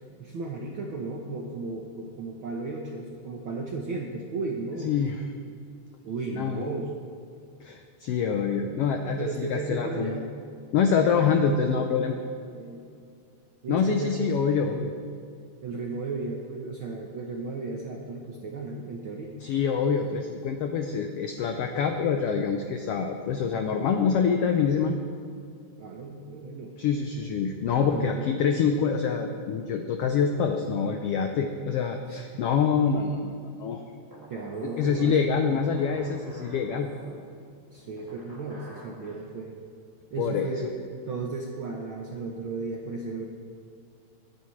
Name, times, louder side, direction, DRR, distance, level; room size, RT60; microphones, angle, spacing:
voice 1, 0.0-4.9 6.0-6.9 9.2-10.3 12.5-12.8 13.6-14.3 15.6-19.4 25.8-26.7 27.8-28.3 32.1-32.5 34.3-35.2 35.5-35.6 37.7-39.6 40.1-43.2, right 3 dB, 75° right, 0 dB, 1.2 m, -35 dB
voice 2, 4.8-5.2 6.3-6.7 7.6-10.2 10.7-12.2 13.7-14.9 19.4-25.0 26.8-33.8 34.8-36.9 40.2-40.6, left 6 dB, 85° left, 5 dB, 1.3 m, -26 dB
sound 1, 34.1-39.2, right 1 dB, 10° right, 1.5 m, -48 dB
21.0 x 9.9 x 3.2 m, 2.3 s
omnidirectional pair, 3.5 m